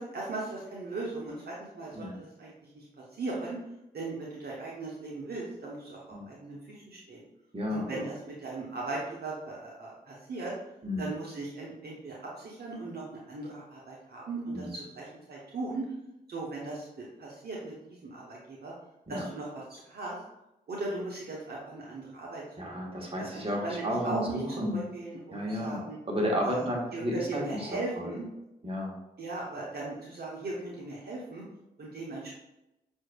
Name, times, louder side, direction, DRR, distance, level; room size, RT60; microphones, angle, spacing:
voice 1, 0.0-2.8 3.1-3.6 3.9-6.0 6.3-7.2 7.7-10.5 11.0-15.9 16.3-18.7 19.1-20.2 20.7-22.4 23.3-26.0 26.4-28.3 29.2-31.4 31.8-32.3, right 2 dB, 55° right, -4 dB, 1.0 m, -38 dB
voice 2, 7.5-8.0 10.8-11.1 14.5-14.7 19.1-19.2 22.6-24.9 25.3-27.7 27.9-28.1 28.6-28.9, equal, 30° right, -2 dB, 1.4 m, -32 dB
6.1 x 2.7 x 2.3 m, 0.91 s
supercardioid pair, 40°, 19 cm